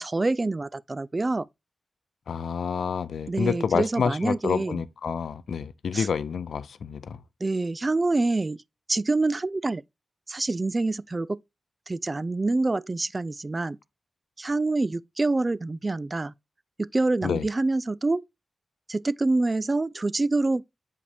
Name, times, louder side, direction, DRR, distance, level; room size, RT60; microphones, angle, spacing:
voice 1, 0.0-1.5 3.3-4.8 5.9-6.1 7.4-8.6 8.9-9.8 10.3-11.4 11.9-13.8 14.4-16.3 16.8-18.2 18.9-20.6, right 2 dB, 40° right, 0.3 m, -26 dB
voice 2, 2.3-7.2 17.2-17.5, left 6 dB, 80° left, 0.4 m, -28 dB
6.7 x 5.0 x 3.3 m
supercardioid pair, 40°, 0 cm